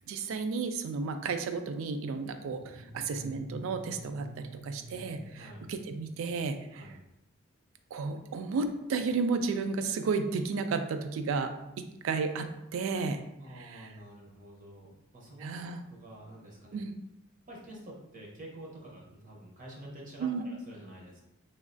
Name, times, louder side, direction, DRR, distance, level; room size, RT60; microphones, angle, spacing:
voice 1, 0.1-6.9 7.9-11.5 11.8-13.2 13.6-13.9 15.4-15.8 16.7-16.9 20.2-20.4, right 4 dB, 70° right, 8 dB, 0.3 m, -33 dB
sound 1, 2.4-6.5, left 1 dB, 50° left, 0.5 m, -48 dB
voice 2, 5.4-5.7 6.7-7.0 13.4-15.6 15.9-16.8 17.5-21.2, right 1 dB, 40° right, -3 dB, 0.6 m, -48 dB
3.1 x 2.3 x 2.5 m, 0.88 s
head